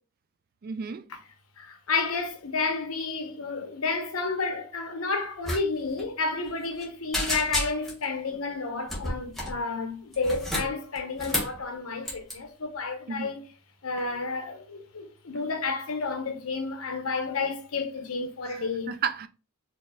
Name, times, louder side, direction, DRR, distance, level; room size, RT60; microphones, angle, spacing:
voice 1, 0.6-1.1 13.1-13.3 18.5-19.3, right 6 dB, 45° right, 0.3 m, -33 dB
voice 2, 1.6-13.4 13.8-18.9, left 4 dB, 80° left, 0.9 m, -31 dB
sound 1, 5.4-5.6 5.9-6.0 6.4-6.8 7.1-8.0 8.9-9.6 10.1-11.6 12.0-12.3, left 1 dB, ahead, 1.1 m, -31 dB
4.6 x 3.0 x 2.2 m
head